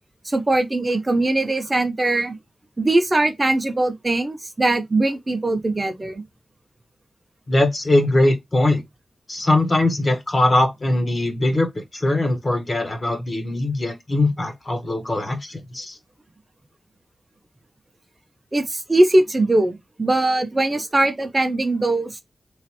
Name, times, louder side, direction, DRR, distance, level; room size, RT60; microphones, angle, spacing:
voice 1, 0.2-2.4 2.8-6.2 18.5-22.2, right 2 dB, 25° right, 0.6 m, -21 dB
voice 2, 7.5-8.8 9.3-16.0, left 1 dB, 35° left, 0.8 m, -21 dB
3.1 x 2.4 x 2.8 m
wide cardioid pair, 140°, 0 cm